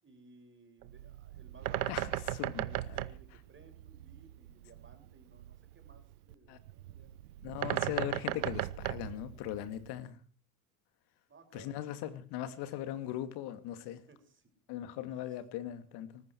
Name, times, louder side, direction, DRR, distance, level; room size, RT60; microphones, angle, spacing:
voice 1, 0.0-1.9 2.5-7.1 11.3-11.8 14.1-14.5 15.1-15.4, right 4 dB, 25° right, 5.9 m, -59 dB
Bird, 0.8-10.0, right 15 dB, 85° right, 0.9 m, -38 dB
voice 2, 1.8-3.0 6.5-6.6 7.4-10.1 11.5-14.0 14.7-16.2, left 12 dB, 60° left, 2.4 m, -39 dB
19.5 x 14.5 x 4.6 m
hypercardioid pair, 85°, 43 cm